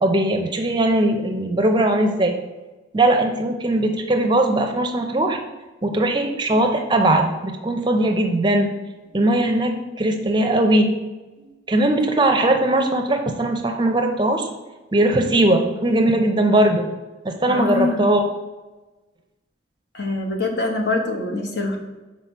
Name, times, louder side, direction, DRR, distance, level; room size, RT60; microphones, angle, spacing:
voice 1, 0.0-2.4 2.9-5.4 5.8-8.7 9.1-9.7 10.0-10.9 11.4-14.5 14.9-16.9 17.2-18.3, right 1 dB, 25° right, 4 dB, 0.5 m, -19 dB
voice 2, 17.5-18.1 19.9-21.8, left 2 dB, 60° left, 2 dB, 1.0 m, -24 dB
5.7 x 4.5 x 4.5 m, 1.2 s
head